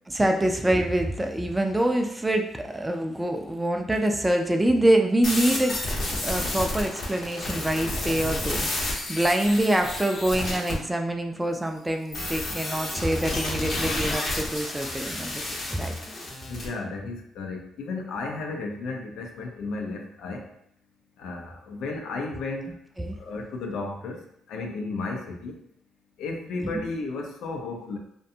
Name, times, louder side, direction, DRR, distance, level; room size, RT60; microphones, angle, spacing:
voice 1, 0.1-5.8 6.2-15.4 15.7-15.9 23.0-23.2, right 1 dB, 10° right, 4 dB, 0.3 m, -25 dB
sound 1, 5.2-10.7 12.1-16.7, left 2 dB, 55° left, 0.7 m, -31 dB
voice 2, 16.5-20.4 21.2-22.8 23.2-25.6 26.2-28.0, left 3 dB, 80° left, 2 dB, 0.5 m, -33 dB
2.5 x 2.2 x 2.7 m, 0.73 s
cardioid pair, 90°, 0 cm